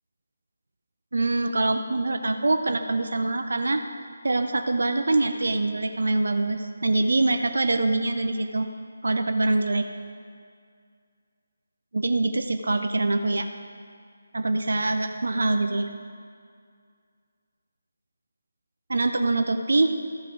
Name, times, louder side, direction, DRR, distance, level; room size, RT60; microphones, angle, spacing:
voice 1, 1.1-3.8 4.2-8.7 9.0-9.9 11.9-13.5 14.3-15.9 18.9-20.0, right 2 dB, 60° right, 7 dB, 0.5 m, -24 dB
13.5 x 5.5 x 5.0 m, 2.2 s
figure-of-eight pair, 150°, 0 cm